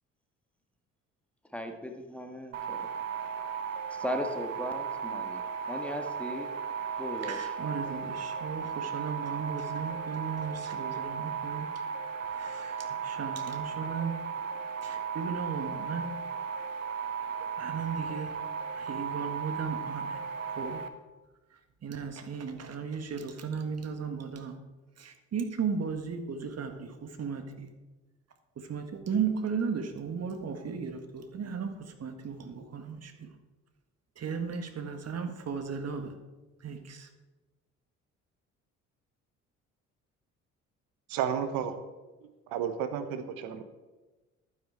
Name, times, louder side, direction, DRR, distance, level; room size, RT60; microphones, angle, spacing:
voice 1, 1.5-2.8 4.0-5.4 5.7-6.5 7.0-7.5, equal, 5° left, 4 dB, 1.9 m, -37 dB
sound 1, 2.5-20.9, right 6 dB, 85° right, 0.8 m, -36 dB
voice 2, 7.2-11.7 12.4-12.8 13.0-14.1 14.8-16.1 17.6-18.3 18.8-20.2 20.6-20.8 21.8-24.5 25.0-26.9 27.2-27.7 28.7-31.7 32.0-33.3 34.2-36.1 36.6-37.1, right 6 dB, 40° right, 7 dB, 1.7 m, -35 dB
voice 3, 41.1-41.8 42.5-43.6, right 8 dB, 65° right, 9 dB, 1.1 m, -32 dB
11.5 x 9.8 x 4.4 m, 1.2 s
figure-of-eight pair, 50°, 38 cm